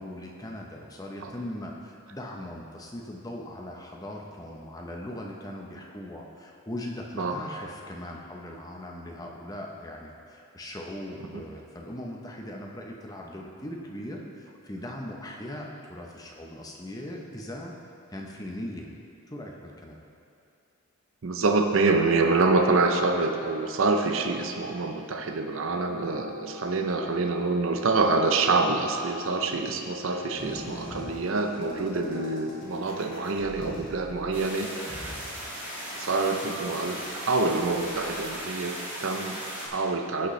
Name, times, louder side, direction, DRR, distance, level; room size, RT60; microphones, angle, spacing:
voice 1, 0.0-17.7 18.1-18.9 19.3-20.0, left 1 dB, 15° left, 0 dB, 0.7 m, -39 dB
voice 2, 21.2-35.2 35.9-40.3, right 3 dB, 65° right, 4 dB, 0.6 m, -26 dB
sound 1, 25.9-32.8, left 2 dB, 80° left, 2.3 m, -43 dB
sound 2, 30.4-38.3, equal, 40° left, 2.0 m, -44 dB
sound 3, 34.3-39.7, equal, 10° right, 2.0 m, -37 dB
15.0 x 6.4 x 3.2 m, 2.5 s
head